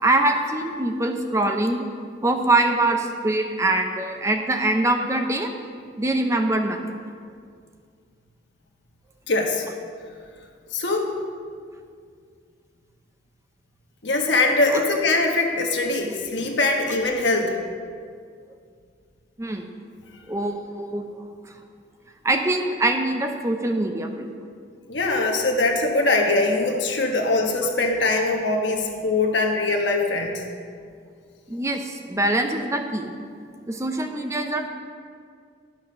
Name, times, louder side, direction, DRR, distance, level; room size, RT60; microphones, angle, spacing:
voice 1, 0.0-1.8 2.2-5.5 6.0-6.9 14.7-14.8 19.4-19.7 20.3-21.1 22.2-24.3 31.5-33.1 33.7-34.7, right 2 dB, 15° right, 5 dB, 0.6 m, -23 dB
voice 2, 9.3-9.7 10.7-11.1 14.0-17.6 24.9-30.4, left 2 dB, 65° left, 2 dB, 1.3 m, -22 dB
10.5 x 6.0 x 6.4 m, 2.1 s
head